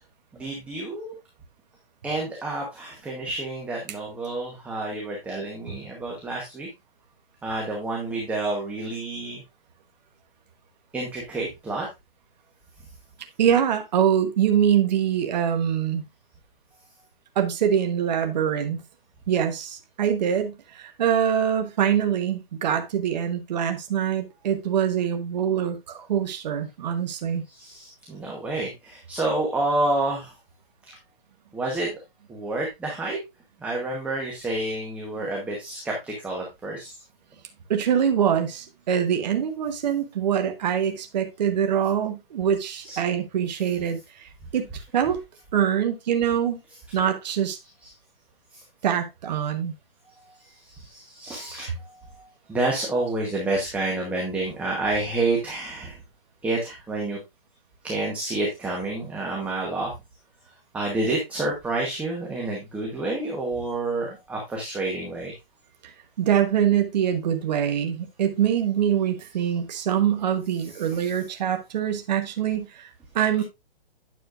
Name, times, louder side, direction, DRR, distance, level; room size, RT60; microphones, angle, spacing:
voice 1, 0.3-1.1 2.0-6.7 7.4-9.4 10.9-11.9 27.5-30.3 30.8-30.9 31.5-31.9 32.3-33.2 33.6-36.9 42.7-43.0 45.0-45.1 45.5-45.7 46.7-46.8 47.8-47.9 48.5-48.6 50.1-56.0 56.4-57.2 57.8-59.9 60.7-65.3 69.4-69.5 70.6-71.1, right 2 dB, 5° right, 1.0 m, -29 dB
voice 2, 13.4-16.0 17.3-18.8 19.3-27.4 37.7-44.7 44.9-45.2 45.5-46.6 46.9-47.6 48.8-49.7 65.8-65.9 66.2-72.9 73.1-73.4, right 9 dB, 45° right, 1.2 m, -24 dB
9.4 x 6.6 x 2.5 m
hypercardioid pair, 155°, 29 cm